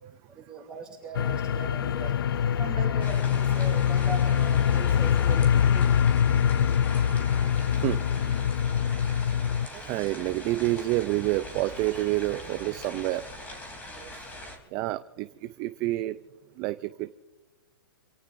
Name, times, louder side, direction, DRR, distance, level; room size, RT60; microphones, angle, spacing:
voice 1, 0.3-2.2 2.6-6.1 6.5-6.8 13.8-14.2, right 3 dB, 5° right, -3 dB, 6.6 m, -40 dB
sound 1, 1.2-9.7, left 8 dB, 70° left, 0.4 m, -24 dB
sound 2, 3.0-14.6, left 1 dB, 15° left, 3.1 m, -42 dB
voice 2, 6.3-8.2 9.1-13.3 14.7-16.2 16.6-17.1, right 17 dB, 25° right, 11 dB, 0.4 m, -30 dB
28.0 x 17.5 x 2.6 m, 1.1 s
hypercardioid pair, 155°, 12 cm